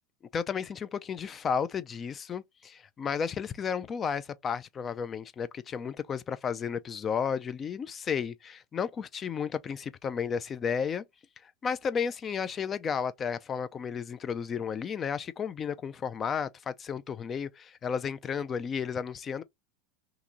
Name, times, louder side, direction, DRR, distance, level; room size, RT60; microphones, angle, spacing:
voice 1, 0.3-11.0 11.4-19.4, left 6 dB, 25° left, 0.3 m, -33 dB
2.9 x 2.5 x 3.7 m
hypercardioid pair, 115°, 0 cm